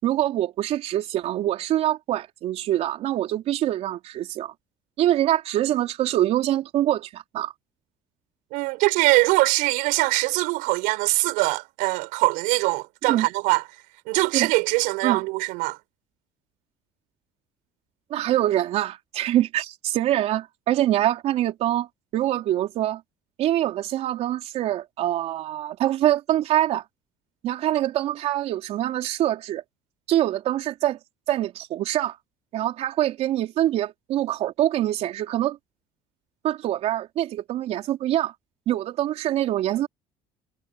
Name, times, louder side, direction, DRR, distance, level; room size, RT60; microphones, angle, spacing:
voice 1, 0.0-4.5 5.0-7.5 13.1-13.3 14.3-14.5 15.0-15.2 18.1-21.9 22.1-23.0 23.4-26.8 27.4-29.6 30.1-31.0 31.3-32.2 32.5-35.6 36.4-38.3 38.7-39.9, right 13 dB, 55° right, 4.2 m, -24 dB
voice 2, 8.5-13.6 14.1-15.8, right 24 dB, 90° right, 7.0 m, -22 dB
cardioid pair, 155°, 13 cm